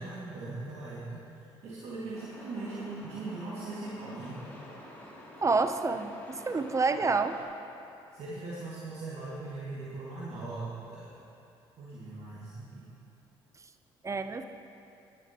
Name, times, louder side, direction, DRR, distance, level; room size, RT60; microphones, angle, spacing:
voice 1, 0.0-4.4 6.9-7.0 8.1-11.2 11.8-12.9, right 3 dB, 60° right, -8 dB, 2.2 m, -40 dB
Truck, 2.1-7.4, left 1 dB, 15° left, 2.9 m, -48 dB
voice 2, 5.4-7.4 14.0-14.4, right 4 dB, 25° right, 9 dB, 0.7 m, -28 dB
14.0 x 11.0 x 3.0 m, 2.7 s
supercardioid pair, 60°, 12 cm